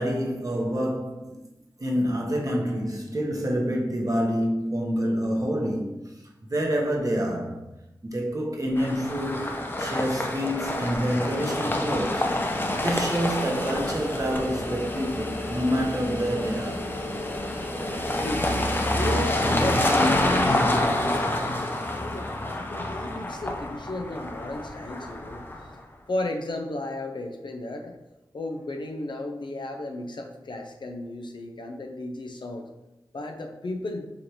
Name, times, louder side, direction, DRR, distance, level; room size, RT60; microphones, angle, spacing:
voice 1, 0.0-1.4 1.8-6.0 6.5-7.7 8.0-12.3 12.8-16.9, equal, 45° right, 1.0 m, -27 dB
sound 1, 8.8-25.7, left 1 dB, 25° left, 0.6 m, -27 dB
voice 2, 18.0-20.1 20.4-21.3 21.8-25.4 26.1-28.0 28.3-32.7 33.1-34.1, left 2 dB, 70° left, 0.6 m, -34 dB
4.9 x 3.3 x 2.9 m
cardioid pair, 45°, 8 cm